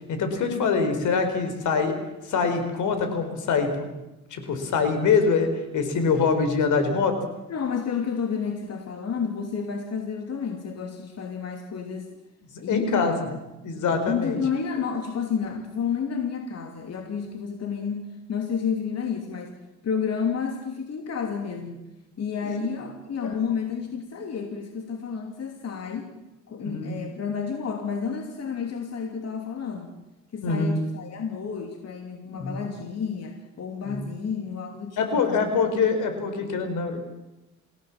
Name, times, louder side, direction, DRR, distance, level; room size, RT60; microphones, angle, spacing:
voice 1, 0.1-1.9 2.2-3.9 4.3-5.5 5.7-7.2 12.7-13.1 13.6-14.4 22.4-22.6 23.2-23.4 26.6-27.0 30.4-30.8 32.2-32.6 33.8-34.0 35.0-37.0, left 5 dB, 80° left, 7 dB, 4.8 m, -24 dB
voice 2, 7.5-12.1 12.6-13.4 13.9-19.6 19.8-21.8 22.2-26.1 26.5-29.9 30.3-35.5, left 6 dB, 55° left, 4 dB, 3.0 m, -30 dB
28.0 x 16.5 x 7.4 m, 0.97 s
cardioid pair, 90°, 30 cm